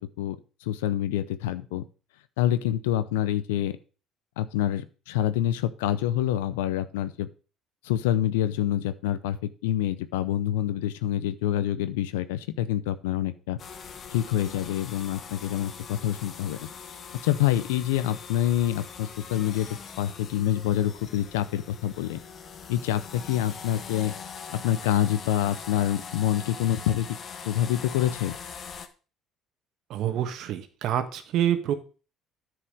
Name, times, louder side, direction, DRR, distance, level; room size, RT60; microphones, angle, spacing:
voice 1, 0.0-1.8 2.4-3.8 4.4-7.3 7.8-13.6 14.1-16.7 17.2-22.2 22.7-24.1 24.5-27.1 27.5-28.4, left 12 dB, 85° left, 13 dB, 0.6 m, -27 dB
sound 1, 13.6-28.9, left 6 dB, 45° left, 1.3 m, -42 dB
voice 2, 29.9-31.7, right 10 dB, 65° right, 9 dB, 1.4 m, -27 dB
9.7 x 4.9 x 6.4 m, 0.36 s
hypercardioid pair, 65°, 0 cm